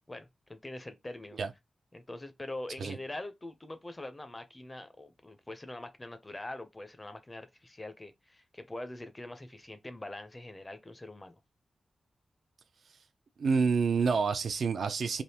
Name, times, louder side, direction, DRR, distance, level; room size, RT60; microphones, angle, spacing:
voice 1, 0.1-1.4 1.9-11.4, left 2 dB, 20° left, 0.5 m, -43 dB
voice 2, 13.4-15.2, right 5 dB, 75° right, 0.4 m, -28 dB
3.4 x 2.4 x 2.8 m
wide cardioid pair, 140°, 0 cm